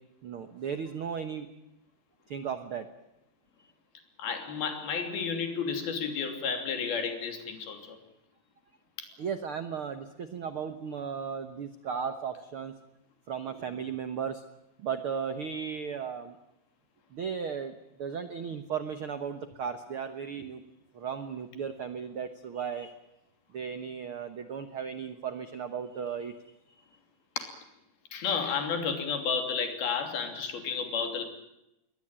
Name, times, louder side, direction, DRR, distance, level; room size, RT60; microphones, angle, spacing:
voice 1, 0.2-1.5 2.3-2.9 9.2-12.7 13.3-14.4 14.8-16.4 17.1-20.6 20.9-22.9 23.5-26.4, right 7 dB, 70° right, 9 dB, 1.2 m, -35 dB
voice 2, 4.2-8.0 27.4-27.5 28.1-31.2, left 6 dB, 85° left, 6 dB, 4.9 m, -32 dB
22.0 x 19.0 x 8.9 m, 0.90 s
omnidirectional pair, 4.2 m